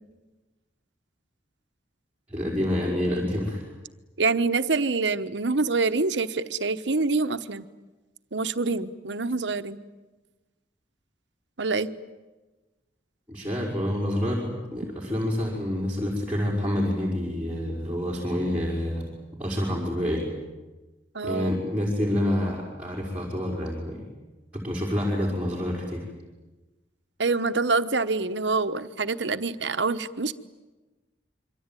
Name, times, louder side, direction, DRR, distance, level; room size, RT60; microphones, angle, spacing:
voice 1, 2.3-3.6 13.3-19.1 19.4-20.2 21.2-24.0 24.5-26.0, left 1 dB, 5° right, -5 dB, 5.4 m, -27 dB
voice 2, 4.2-7.7 8.3-9.8 11.6-11.9 21.1-21.6 27.2-30.3, right 3 dB, 75° right, 11 dB, 1.1 m, -26 dB
27.0 x 24.0 x 9.1 m, 1.2 s
head